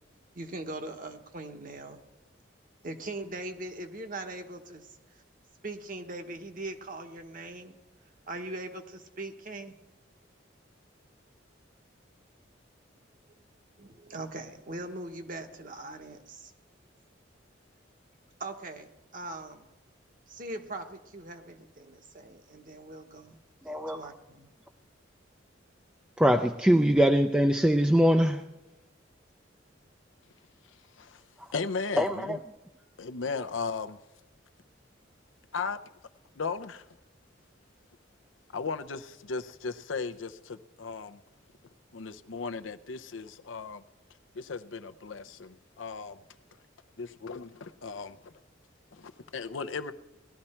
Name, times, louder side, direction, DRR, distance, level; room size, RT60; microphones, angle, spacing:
voice 1, 0.3-2.0 2.8-5.0 5.6-7.8 8.3-9.8 13.8-16.5 18.4-19.6 20.3-23.4 23.9-24.5, right 2 dB, 45° right, 1.1 m, -41 dB
voice 2, 23.7-24.0 26.2-28.4 31.4-31.5 32.0-32.4, equal, 5° right, 0.4 m, -23 dB
voice 3, 31.5-32.4 33.0-34.0 35.5-35.8 36.4-36.8 38.5-41.2 41.9-43.8 44.3-46.2 47.0-48.3 48.9-49.9, left 4 dB, 85° left, 0.7 m, -36 dB
18.5 x 12.0 x 4.4 m
head